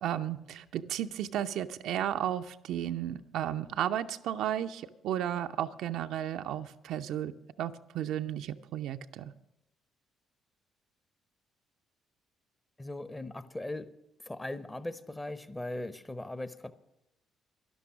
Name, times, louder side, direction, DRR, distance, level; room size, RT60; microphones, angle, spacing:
voice 1, 0.0-7.3 7.6-9.3, right 11 dB, 60° right, 9 dB, 0.4 m, -33 dB
voice 2, 12.8-13.9 14.2-16.7, left 1 dB, 15° left, 14 dB, 0.8 m, -39 dB
12.5 x 11.0 x 6.1 m, 0.87 s
figure-of-eight pair, 45°, 0 cm